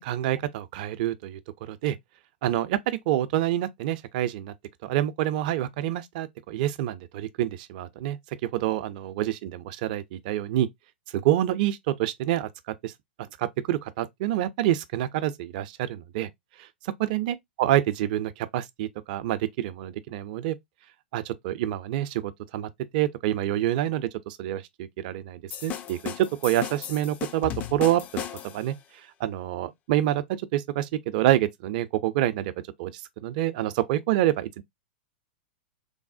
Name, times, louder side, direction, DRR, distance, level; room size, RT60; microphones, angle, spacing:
voice 1, 0.0-1.4 1.7-2.0 2.4-4.5 4.8-10.7 11.1-12.9 13.4-16.3 16.6-20.6 21.1-28.7 29.2-32.5 32.8-34.6, right 13 dB, 50° right, 0.4 m, -27 dB
sound 1, 25.5-28.7, left 10 dB, 30° left, 0.4 m, -36 dB
3.3 x 2.1 x 2.4 m
hypercardioid pair, 105°, 5 cm